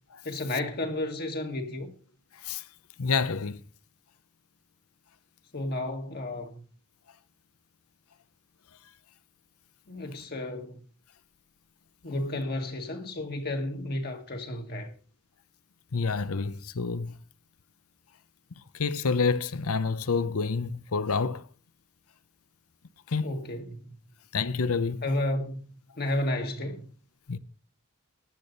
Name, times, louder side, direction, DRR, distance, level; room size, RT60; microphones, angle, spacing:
voice 1, 0.2-1.9 5.5-6.6 9.9-10.8 12.0-14.9 23.2-23.8 25.0-25.6 26.0-26.9, left 1 dB, 45° left, 1.9 m, -32 dB
voice 2, 3.0-3.6 15.9-17.1 18.7-21.4 23.1-23.3 24.3-25.0 27.3-27.4, left 4 dB, 70° left, 0.8 m, -28 dB
15.5 x 10.5 x 4.0 m
head